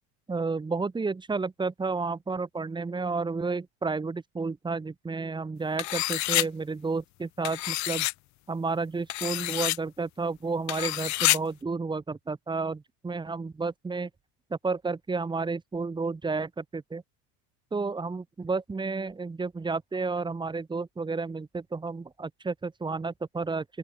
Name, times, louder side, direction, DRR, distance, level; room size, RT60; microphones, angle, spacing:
voice 1, 0.3-8.1 8.5-14.1 14.5-17.0 17.7-23.7, right 4 dB, 15° right, 4.0 m, -31 dB
sound 1, 5.8-6.5 7.4-8.1 9.1-9.8 10.7-11.4, left 19 dB, 55° left, 3.2 m, -27 dB
open air
cardioid pair, 140°, 34 cm